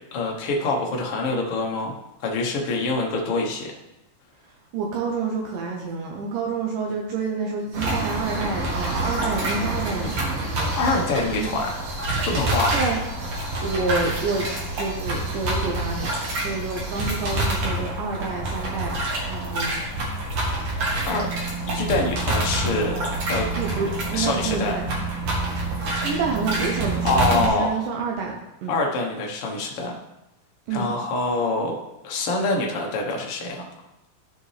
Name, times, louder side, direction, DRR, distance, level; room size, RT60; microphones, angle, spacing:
voice 1, 0.1-3.7 10.8-11.8 12.3-12.8 21.1-21.3 21.6-23.5 24.1-24.8 27.0-27.9 28.7-30.0 30.7-31.8 32.0-33.7, left 3 dB, 70° left, 0 dB, 1.3 m, -25 dB
voice 2, 4.7-10.7 11.3-11.5 12.7-13.0 13.6-14.5 14.8-19.8 23.5-24.8 25.7-28.7 30.7-30.9, right 4 dB, 75° right, 0 dB, 2.2 m, -28 dB
sound 1, 7.7-27.5, right 2 dB, 50° right, 2.3 m, -27 dB
13.0 x 5.1 x 3.3 m, 0.92 s
omnidirectional pair, 4.3 m